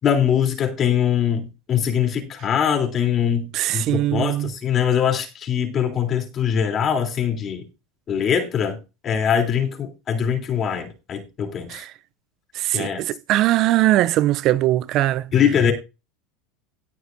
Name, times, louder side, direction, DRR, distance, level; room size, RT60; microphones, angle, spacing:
voice 1, 0.0-7.6 8.1-8.8 9.0-11.8 12.7-13.0 15.3-15.7, left 8 dB, 35° left, 3.1 m, -22 dB
voice 2, 3.5-4.5 11.7-11.9 12.6-15.3, right 15 dB, 50° right, 0.4 m, -20 dB
18.5 x 6.3 x 2.6 m
supercardioid pair, 105°, 0 cm